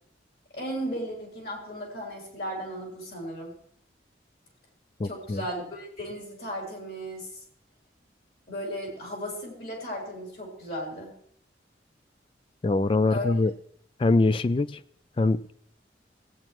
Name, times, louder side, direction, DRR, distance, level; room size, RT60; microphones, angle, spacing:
voice 1, 0.5-3.5 5.0-7.3 8.5-11.1 13.1-13.3, equal, 55° left, -1 dB, 3.8 m, -35 dB
voice 2, 5.0-5.4 12.6-13.5 14.0-14.7 15.2-15.5, left 2 dB, 30° left, 15 dB, 0.3 m, -23 dB
17.5 x 8.8 x 3.0 m, 0.65 s
head